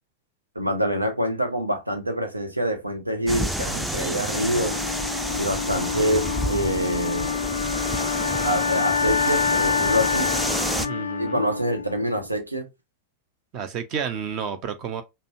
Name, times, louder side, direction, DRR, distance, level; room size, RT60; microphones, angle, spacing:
voice 1, 0.5-4.8 5.3-7.3 8.4-10.3 11.2-12.7, equal, 85° right, 0.9 m, -26 dB
sound 1, 3.3-10.9, right 1 dB, 5° right, 0.5 m, -29 dB
Wind instrument woodwind instrument, 4.3-12.3, left 6 dB, 75° left, 0.4 m, -27 dB
voice 2, 10.8-11.5 13.5-15.0, right 7 dB, 40° right, 0.8 m, -31 dB
5.2 x 2.2 x 2.6 m
figure-of-eight pair, 90°, 0 cm